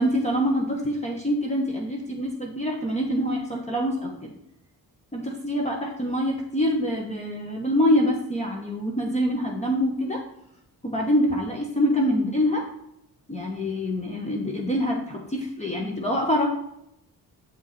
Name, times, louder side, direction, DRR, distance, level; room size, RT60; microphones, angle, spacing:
voice 1, 0.0-4.1 5.1-10.2 10.8-12.6 13.3-16.5, equal, 20° left, 0 dB, 1.2 m, -25 dB
7.6 x 4.7 x 4.2 m, 0.78 s
cardioid pair, 120°, 36 cm